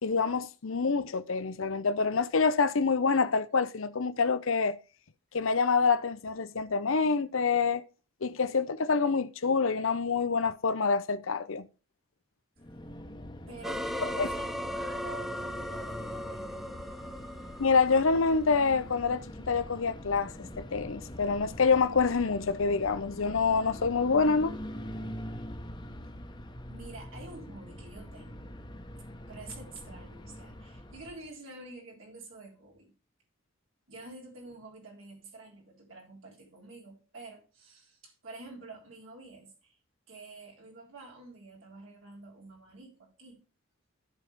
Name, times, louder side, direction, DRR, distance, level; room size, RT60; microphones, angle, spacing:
voice 1, 0.0-4.8 5.3-7.8 8.2-11.7 14.2-14.3 17.6-24.5, left 4 dB, 75° left, 0.7 m, -27 dB
sound 1, 12.6-31.3, equal, 20° left, 1.1 m, -44 dB
voice 2, 13.5-16.9 26.7-28.5 29.3-32.9 33.9-39.8 40.1-43.5, right 2 dB, 70° right, 3.5 m, -48 dB
sound 2, 13.6-18.6, equal, ahead, 0.5 m, -37 dB
14.0 x 5.5 x 3.5 m
head